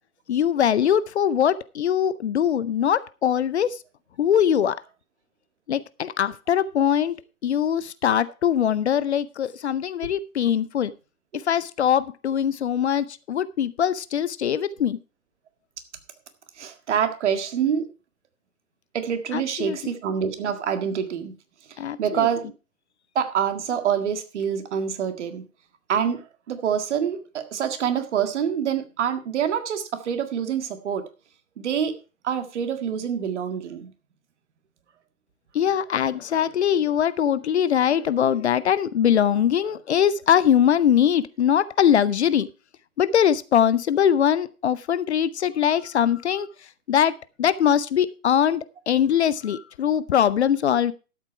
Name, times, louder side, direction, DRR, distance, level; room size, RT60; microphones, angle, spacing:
voice 1, 0.3-3.8 4.2-4.8 5.7-7.2 7.4-10.9 11.3-15.0 19.3-19.8 21.8-22.3 35.5-42.5 43.0-46.5 46.9-50.9, left 9 dB, 50° left, 17 dB, 0.6 m, -22 dB
voice 2, 16.6-17.9 18.9-21.3 21.7-22.5 23.2-25.4 25.9-31.1 31.6-32.0 32.2-33.9, right 8 dB, 50° right, 9 dB, 1.9 m, -26 dB
12.5 x 8.1 x 4.5 m, 0.33 s
figure-of-eight pair, 115°, 44 cm